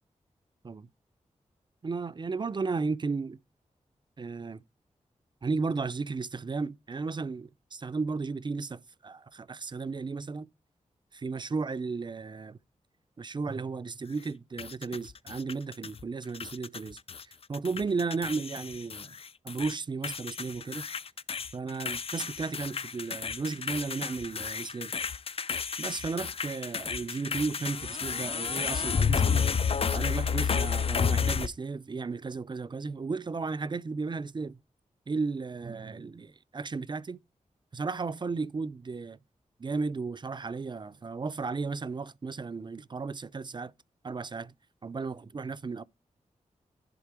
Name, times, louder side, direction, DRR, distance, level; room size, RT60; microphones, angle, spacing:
voice 1, 1.8-3.4 4.2-4.6 5.4-10.5 11.1-12.6 13.2-17.0 17.3-19.2 19.4-20.9 21.5-25.0 25.8-29.4 29.9-34.6 35.1-36.3 36.5-37.2 37.7-39.2 39.6-43.7 44.0-44.5 44.8-45.8, right 4 dB, 35° right, 0.5 m, -34 dB
sound 1, 14.6-16.0 16.3-17.2 17.5-19.7 20.0-31.5, left 6 dB, 45° left, 0.4 m, -31 dB
11.0 x 3.6 x 4.8 m
cardioid pair, 60°, 13 cm